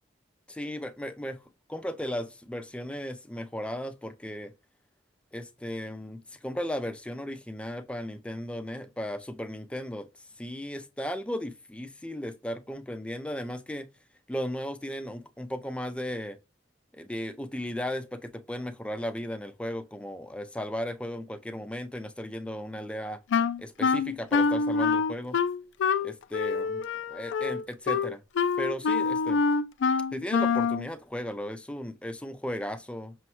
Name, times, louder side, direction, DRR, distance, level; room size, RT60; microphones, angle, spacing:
voice 1, 0.5-1.4 1.7-4.5 5.3-13.9 14.3-16.4 16.9-23.2 23.6-25.4 26.0-28.2 28.6-29.4 30.1-33.1, equal, 5° left, 0.3 m, -36 dB
Wind instrument woodwind instrument, 23.3-30.9, left 5 dB, 80° left, 0.3 m, -26 dB
6.2 x 2.2 x 2.9 m
head